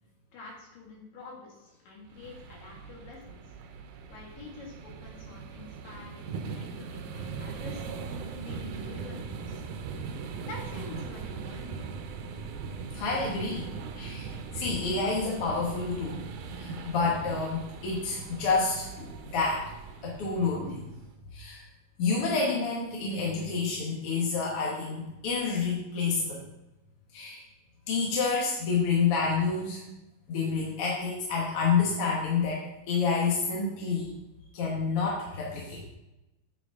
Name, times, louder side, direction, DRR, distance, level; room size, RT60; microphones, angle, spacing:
voice 1, 0.3-3.6 4.1-8.0 8.4-9.6 10.4-12.0, left 3 dB, 85° left, -1 dB, 3.6 m, -47 dB
sound 1, 2.1-21.1, right 5 dB, 75° right, 2.1 m, -40 dB
voice 2, 12.9-13.7 14.0-16.2 16.5-19.6 20.0-20.8 21.3-21.6 22.0-26.4 27.1-27.4 27.9-29.8 30.3-34.2 34.5-35.8, left 4 dB, 55° left, -3 dB, 1.8 m, -29 dB
8.4 x 7.0 x 3.6 m, 0.95 s
omnidirectional pair, 3.8 m